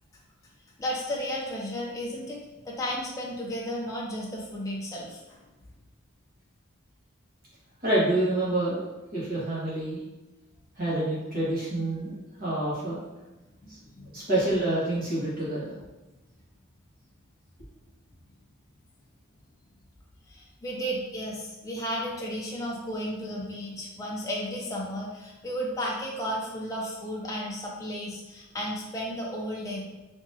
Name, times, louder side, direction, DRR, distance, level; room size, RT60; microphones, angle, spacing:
voice 1, 0.8-2.4 2.6-5.4 13.6-14.2 20.3-29.8, equal, 15° left, -3 dB, 0.5 m, -33 dB
voice 2, 7.8-8.9 9.1-10.0 10.8-13.0 13.7-13.8 14.1-15.7, right 1 dB, 45° right, -8 dB, 1.4 m, -27 dB
3.5 x 2.9 x 2.8 m, 1.1 s
head